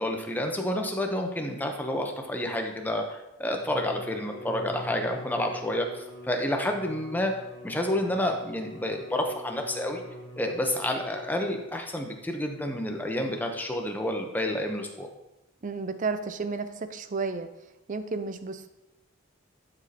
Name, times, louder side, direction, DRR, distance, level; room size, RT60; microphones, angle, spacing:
voice 1, 0.0-7.3 7.6-10.0 10.4-15.1, left 1 dB, 10° left, 3 dB, 0.7 m, -29 dB
Bowed string instrument, 3.5-11.8, left 1 dB, 90° left, 1.5 m, -44 dB
voice 2, 15.6-17.5 17.9-18.7, right 4 dB, 35° right, 10 dB, 0.4 m, -32 dB
12.0 x 5.1 x 2.9 m, 0.92 s
head